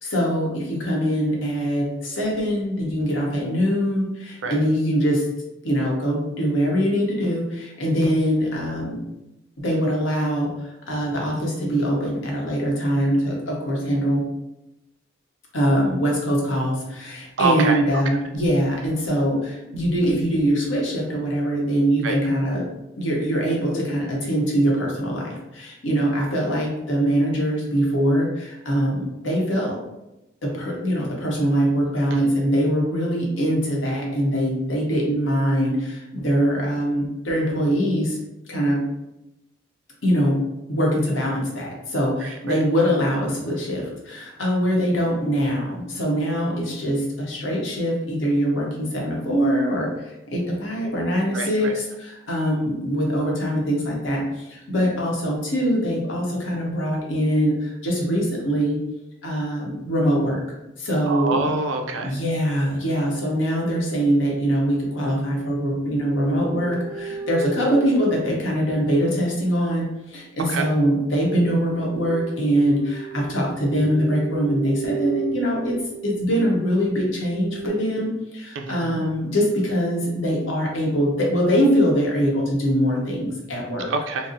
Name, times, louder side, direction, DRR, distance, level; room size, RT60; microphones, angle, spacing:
voice 1, 0.0-5.3 5.6-9.0 9.6-14.2 15.5-22.7 23.0-29.8 30.4-38.2 38.5-38.8 40.0-40.4 40.7-58.8 59.2-60.4 60.8-61.5 62.0-75.8 76.0-83.9, equal, 70° left, -2 dB, 0.9 m, -23 dB
voice 2, 17.4-18.0 22.0-22.2 32.1-32.2 42.2-42.6 51.3-51.7 61.1-62.2 70.4-70.7 78.6-78.8 83.9-84.3, right 3 dB, 70° right, 4 dB, 0.4 m, -26 dB
sound 1, 65.4-69.5 71.7-77.7, right 5 dB, 45° left, 0.4 m, -35 dB
4.0 x 2.0 x 2.5 m, 0.94 s
head